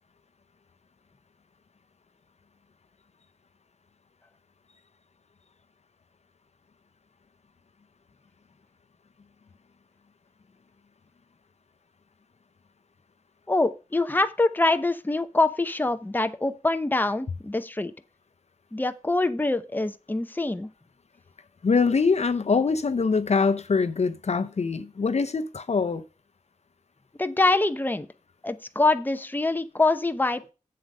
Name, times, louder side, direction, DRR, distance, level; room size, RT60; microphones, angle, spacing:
voice 1, 13.5-17.9 18.7-20.7 27.2-28.1 28.4-30.5, left 2 dB, 15° left, 0.8 m, -24 dB
voice 2, 21.6-26.0, left 4 dB, 55° left, 0.7 m, -23 dB
7.8 x 7.8 x 5.3 m
wide cardioid pair, 80°, 13 cm